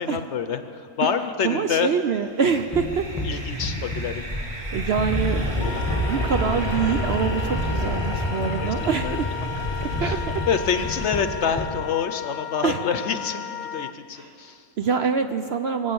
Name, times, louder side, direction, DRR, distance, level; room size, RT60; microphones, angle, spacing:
voice 1, 0.0-1.9 2.5-2.6 3.2-4.3 7.6-7.7 8.6-9.2 9.8-14.7, left 6 dB, 60° left, 9 dB, 0.9 m, -27 dB
voice 2, 1.4-3.1 3.3-3.6 4.7-5.6 5.9-9.3 10.0-10.4 12.6-12.8 14.2-14.3 14.8-15.9, right 6 dB, 60° right, 7 dB, 0.7 m, -25 dB
sound 1, 2.6-11.7, equal, 20° right, 2.2 m, -29 dB
sound 2, 2.7-4.7 5.0-9.4 9.9-11.9, left 1 dB, ahead, 1.3 m, -32 dB
Wind instrument woodwind instrument, 5.6-13.9, left 11 dB, 80° left, 1.1 m, -35 dB
23.5 x 8.2 x 6.9 m, 2.6 s
omnidirectional pair, 1.5 m